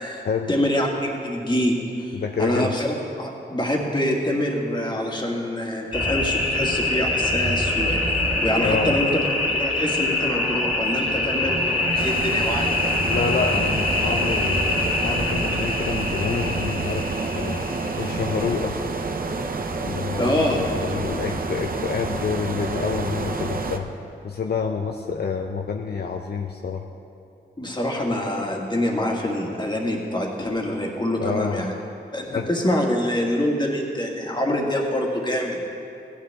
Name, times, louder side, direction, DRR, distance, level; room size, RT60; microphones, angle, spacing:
voice 1, 0.5-9.2 9.5-12.7 20.2-20.7 27.6-31.7 32.1-35.6, left 1 dB, 25° left, -1 dB, 1.9 m, -25 dB
voice 2, 2.1-2.7 8.6-8.9 13.1-17.1 17.3-18.8 19.8-23.9 24.2-26.8 31.2-31.6 32.3-32.5, left 5 dB, 60° left, 3 dB, 0.6 m, -28 dB
sound 1, 5.9-18.5, left 2 dB, 10° right, 2.6 m, -24 dB
sound 2, 11.9-23.8, right 3 dB, 50° right, 0.8 m, -29 dB
15.5 x 10.0 x 3.6 m, 2.5 s
cardioid pair, 65°, 19 cm